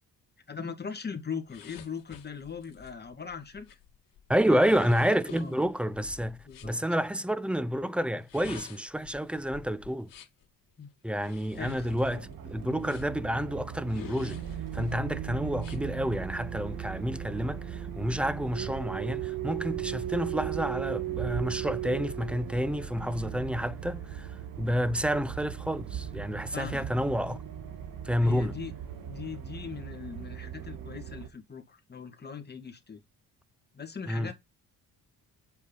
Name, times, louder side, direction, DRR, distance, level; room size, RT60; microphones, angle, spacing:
voice 1, 0.5-3.8 4.4-4.9 5.3-5.6 6.5-6.8 10.8-10.9 11.6-12.2 26.5-26.8 28.2-28.7 29.0-33.0 33.7-34.3, left 6 dB, 25° left, 2.3 m, -40 dB
sound 1, 1.5-6.8 8.1-10.4 11.2-13.3 13.9-14.9 15.6-15.8, left 9 dB, 60° left, 2.3 m, -49 dB
voice 2, 4.3-6.4 6.6-10.1 11.0-14.4 14.7-24.3 24.6-27.4 28.0-28.5 34.1-34.3, equal, 5° right, 0.6 m, -29 dB
sound 2, 11.5-31.3, right 10 dB, 60° right, 2.0 m, -37 dB
8.3 x 5.6 x 4.2 m
cardioid pair, 95°, 37 cm